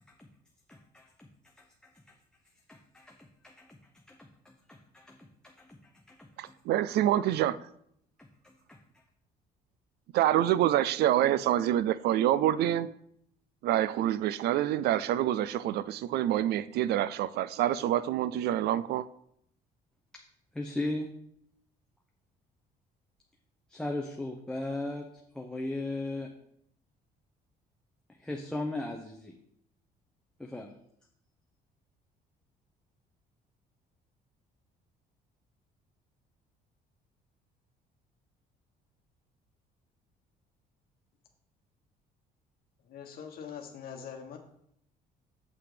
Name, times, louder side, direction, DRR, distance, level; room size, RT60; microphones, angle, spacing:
voice 1, 0.7-1.3 1.6-1.9 2.7-3.8 4.1-6.6 8.2-9.0 20.5-21.1 23.7-25.1 25.3-26.3 28.1-29.3 30.4-30.7, left 2 dB, 5° left, 0.9 m, -38 dB
voice 2, 6.4-7.6 10.1-12.9 13.6-19.1, right 12 dB, 75° right, 0.5 m, -27 dB
voice 3, 42.9-44.4, left 7 dB, 60° left, 1.4 m, -43 dB
7.9 x 5.9 x 5.0 m
cardioid pair, 110°, 17 cm